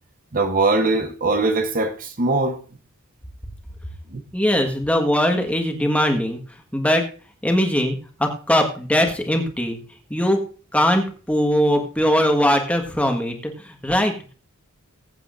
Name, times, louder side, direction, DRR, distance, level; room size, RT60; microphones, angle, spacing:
voice 1, 0.3-2.6 4.1-4.2, right 3 dB, 40° right, 0.9 m, -21 dB
voice 2, 4.3-6.4 6.7-7.1 7.4-9.8 10.1-10.4 10.7-14.3, equal, 5° left, 1.5 m, -20 dB
21.0 x 8.2 x 2.6 m
head